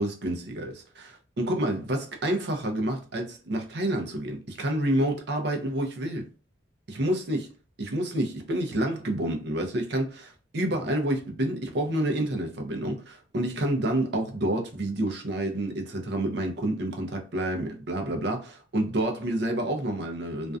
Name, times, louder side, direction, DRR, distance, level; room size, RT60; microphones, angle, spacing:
voice 1, 0.0-6.3 6.9-7.4 7.8-20.6, right 1 dB, 55° right, 0.5 m, -29 dB
2.4 x 2.2 x 2.3 m
head